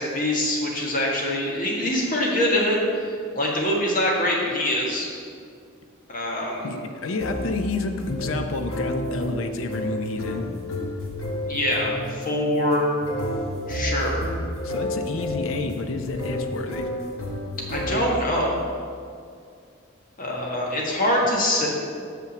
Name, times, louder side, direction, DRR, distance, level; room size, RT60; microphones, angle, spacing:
voice 1, 0.0-3.0 3.3-5.1 6.1-6.7 11.4-12.9 13.7-14.3 17.7-18.6 20.2-21.7, left 1 dB, 40° left, -2 dB, 1.5 m, -24 dB
voice 2, 6.6-10.5 14.6-16.9, left 3 dB, 75° left, 7 dB, 0.6 m, -29 dB
sound 1, 7.2-18.4, left 1 dB, 90° left, 1.6 m, -31 dB
6.1 x 5.8 x 7.0 m, 2.2 s
head